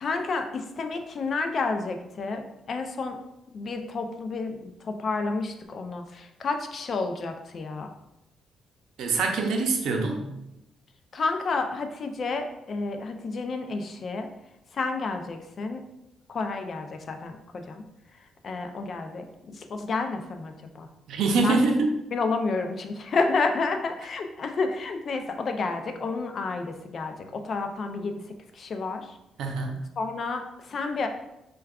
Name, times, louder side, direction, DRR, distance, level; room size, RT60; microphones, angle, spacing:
voice 1, 0.0-3.2 3.5-7.9 11.1-14.3 14.7-15.8 16.3-17.8 18.4-19.2 19.6-20.9 21.4-21.6 22.1-28.1 28.5-29.1 30.0-31.1, left 3 dB, 50° left, 5 dB, 0.4 m, -30 dB
voice 2, 9.0-10.2 21.1-21.9 29.4-29.8, right 3 dB, 80° right, 2 dB, 0.5 m, -24 dB
4.4 x 2.2 x 2.3 m, 0.88 s
cardioid pair, 90°, 0 cm